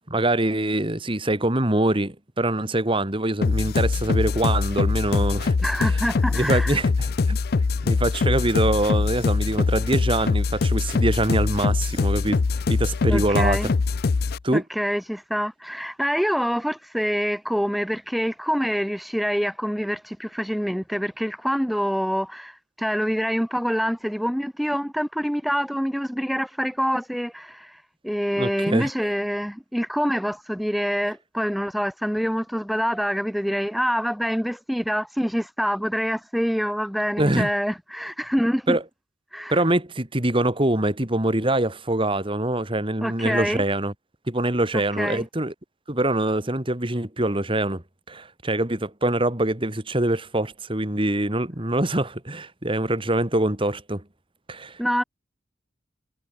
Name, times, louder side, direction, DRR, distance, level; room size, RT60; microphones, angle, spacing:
voice 1, 0.1-5.5 5.8-6.1 6.3-7.4 7.8-13.7 14.4-14.6 28.4-28.9 37.2-37.5 38.7-38.8 39.5-43.9 44.3-45.5 45.9-54.0 54.5-54.8, right 1 dB, 30° right, 2.5 m, -24 dB
sound 1, 3.4-14.4, left 4 dB, 55° left, 0.5 m, -23 dB
voice 2, 5.6-6.8 13.1-13.7 14.5-27.8 28.0-38.8 39.3-39.6 43.0-43.6 45.0-45.3 54.8-55.0, equal, ahead, 1.1 m, -26 dB
head